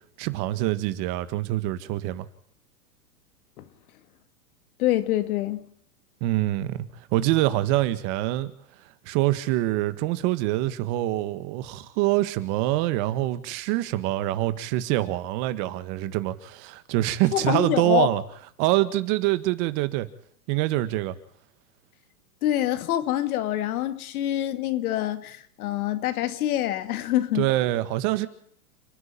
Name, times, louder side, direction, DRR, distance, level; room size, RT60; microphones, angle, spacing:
voice 1, 0.2-2.3 6.2-6.8 7.1-8.5 9.0-18.2 18.6-20.1 20.5-21.2 27.3-28.3, right 16 dB, 45° right, 1.8 m, -25 dB
voice 2, 4.8-5.7 17.3-18.1 22.4-27.5, left 13 dB, 65° left, 2.4 m, -26 dB
29.5 x 10.0 x 8.8 m
hypercardioid pair, 130°, 46 cm